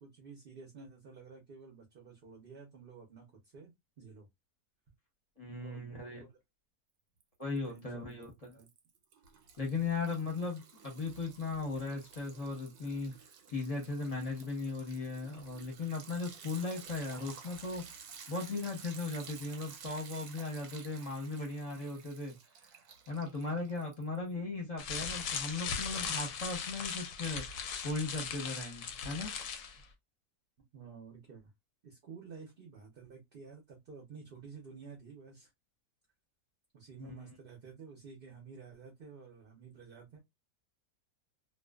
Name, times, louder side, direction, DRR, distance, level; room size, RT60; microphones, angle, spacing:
voice 1, 0.0-3.3 3.5-4.3 5.6-6.3 7.7-8.2 8.5-8.7 30.7-31.5 31.8-35.5 36.7-40.2, right 5 dB, 50° right, 0.7 m, -51 dB
voice 2, 5.4-6.2 7.4-8.5 9.6-13.1 13.5-17.8 18.3-22.4 23.1-29.3 37.0-37.2, left 3 dB, 30° left, 0.8 m, -37 dB
Liquid, 7.2-7.8 8.1-24.3, right 6 dB, 90° right, 1.2 m, -53 dB
sound 1, 24.8-29.8, left 6 dB, 65° left, 0.8 m, -38 dB
2.4 x 2.3 x 2.2 m
omnidirectional pair, 1.6 m